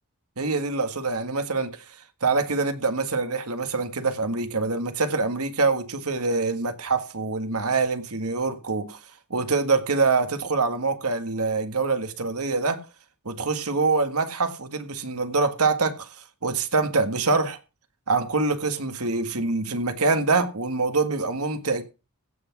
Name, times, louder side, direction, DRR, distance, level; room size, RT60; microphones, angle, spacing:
voice 1, 0.4-1.8 2.2-9.0 9.3-12.8 13.3-16.1 16.4-17.6 18.1-21.8, right 3 dB, 85° right, 1.7 m, -25 dB
16.0 x 6.1 x 5.9 m
head